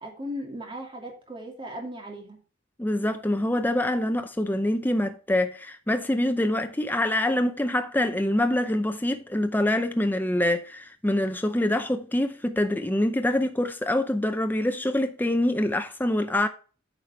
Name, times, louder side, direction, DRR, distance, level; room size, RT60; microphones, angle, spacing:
voice 1, 0.0-2.4, equal, 25° right, 2.7 m, -37 dB
voice 2, 2.8-16.5, left 1 dB, 10° left, 0.6 m, -25 dB
9.1 x 5.0 x 4.5 m
head